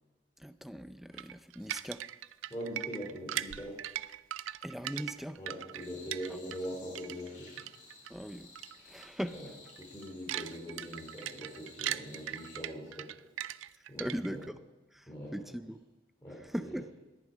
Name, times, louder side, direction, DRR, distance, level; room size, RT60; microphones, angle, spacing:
voice 1, 0.4-2.0 4.6-5.4 8.1-8.5 8.8-9.5 14.0-14.6 14.9-15.8 16.3-16.9, equal, ahead, 12 dB, 0.4 m, -39 dB
sound 1, 1.2-6.7 7.0-8.1 8.6-8.8 9.0-9.2 9.7-14.5, right 12 dB, 90° right, 0.4 m, -40 dB
voice 2, 2.5-3.8 4.9-5.0 5.4-7.6 9.3-9.5 9.8-13.1 13.9-14.4 15.1-15.6 16.2-16.8, equal, 15° left, -6 dB, 3.0 m, -42 dB
sound 2, 5.7-12.6, left 3 dB, 45° left, 5.4 m, -56 dB
19.0 x 10.5 x 5.0 m, 1.1 s
head